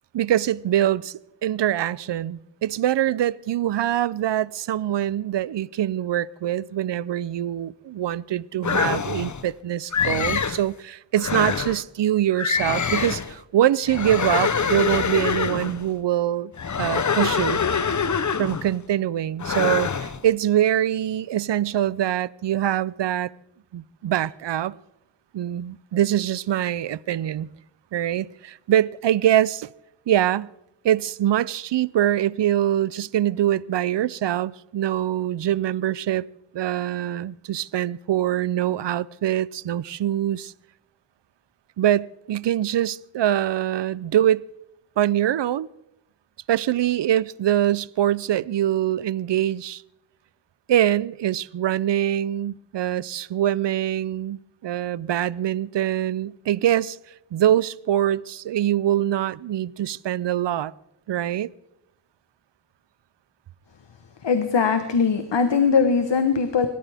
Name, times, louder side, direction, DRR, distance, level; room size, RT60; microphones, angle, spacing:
voice 1, 0.1-1.1 1.4-16.5 16.8-17.6 18.4-23.3 23.7-24.8 25.3-27.5 27.9-29.7 30.1-30.5 30.8-36.3 36.5-40.5 41.8-44.4 45.0-45.7 46.5-49.8 50.7-57.0 57.3-60.7 61.1-61.5, right 11 dB, 85° right, 0.5 m, -24 dB
sound 1, 8.6-9.4 9.9-10.6 11.2-11.8 12.4-13.3 13.9-15.8 16.6-18.7 19.4-20.2, left 6 dB, 45° left, 0.8 m, -25 dB
voice 2, 64.2-66.7, left 5 dB, 90° left, 1.1 m, -20 dB
24.5 x 13.5 x 3.4 m
wide cardioid pair, 65°, 42 cm